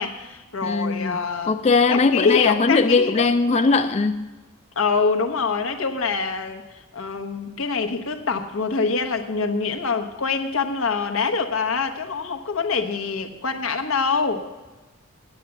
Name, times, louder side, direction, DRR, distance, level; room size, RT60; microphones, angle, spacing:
voice 1, 0.0-1.6 1.9-3.3 4.8-6.6 6.9-14.4, left 5 dB, 80° left, 6 dB, 1.0 m, -25 dB
voice 2, 0.6-1.2 1.5-4.3, left 4 dB, 30° left, 8 dB, 0.3 m, -20 dB
9.2 x 7.8 x 8.1 m, 1.2 s
head